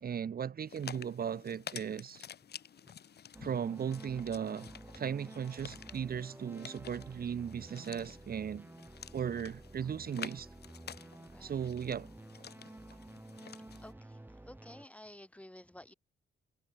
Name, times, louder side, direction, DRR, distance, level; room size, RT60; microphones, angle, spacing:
voice 1, 0.0-2.3 3.4-8.7 9.1-10.5 11.4-12.1, right 8 dB, 50° right, 1.8 m, -37 dB
sound 1, 0.7-13.9, left 8 dB, 55° left, 3.8 m, -50 dB
sound 2, 3.3-14.9, right 1 dB, 10° right, 3.7 m, -51 dB
voice 2, 11.3-11.7 13.8-14.2 14.5-15.9, left 1 dB, 5° left, 3.5 m, -52 dB
cardioid pair, 90°, 20 cm